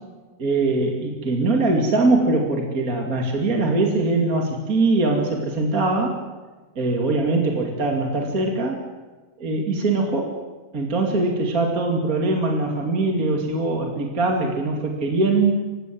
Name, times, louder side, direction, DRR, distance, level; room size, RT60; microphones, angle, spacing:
voice 1, 0.4-6.1 6.8-8.8 9.4-10.3 10.7-15.5, right 2 dB, 30° right, 1 dB, 2.6 m, -22 dB
26.5 x 16.5 x 7.7 m, 1.3 s
omnidirectional pair, 3.3 m